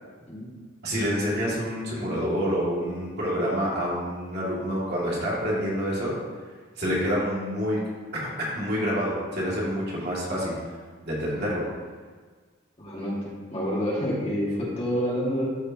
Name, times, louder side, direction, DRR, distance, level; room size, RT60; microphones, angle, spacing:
voice 1, 0.8-6.1 6.8-7.8 8.1-10.5 11.0-11.6, equal, 50° right, -6 dB, 2.4 m, -27 dB
voice 2, 12.8-15.5, equal, 30° left, -6 dB, 2.0 m, -28 dB
12.5 x 5.1 x 2.9 m, 1.5 s
head